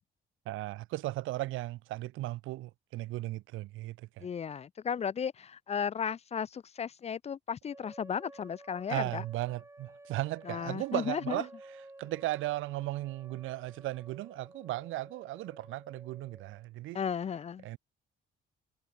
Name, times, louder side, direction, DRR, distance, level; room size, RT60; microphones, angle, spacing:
voice 1, 0.5-4.3 8.9-11.5 12.0-17.0 17.6-17.8, right 17 dB, 85° right, 0.6 m, -36 dB
voice 2, 4.2-9.2 10.5-11.4 16.9-17.6, left 7 dB, 35° left, 0.4 m, -35 dB
sound 1, 7.7-16.6, right 2 dB, 15° right, 4.8 m, -53 dB
cardioid pair, 90°, 20 cm